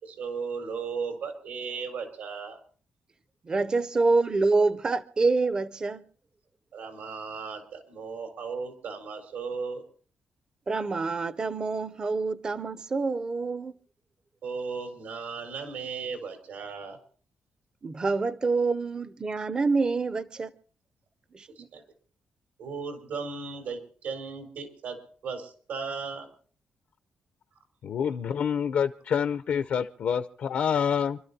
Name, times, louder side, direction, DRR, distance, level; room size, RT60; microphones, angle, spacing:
voice 1, 0.0-2.6 6.7-9.8 14.4-17.0 21.6-21.8 22.6-25.0 25.2-26.3, right 5 dB, 85° right, 4.3 m, -36 dB
voice 2, 3.5-6.0 10.7-13.7 17.8-20.5 21.3-21.7, right 3 dB, 30° right, 0.6 m, -26 dB
voice 3, 27.8-31.2, left 7 dB, 70° left, 0.6 m, -27 dB
28.5 x 12.5 x 2.8 m
wide cardioid pair, 150°, 3 cm